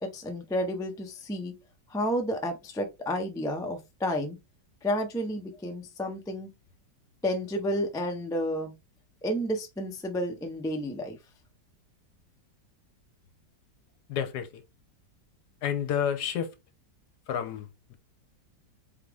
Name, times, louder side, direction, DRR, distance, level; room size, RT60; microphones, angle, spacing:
voice 1, 0.0-1.5 1.9-4.4 4.8-6.5 7.2-8.7 9.2-11.2, equal, 5° left, 0.4 m, -31 dB
voice 2, 14.1-14.6 15.6-16.5 17.3-17.9, left 8 dB, 70° left, 1.3 m, -30 dB
4.1 x 3.8 x 3.4 m
omnidirectional pair, 1.9 m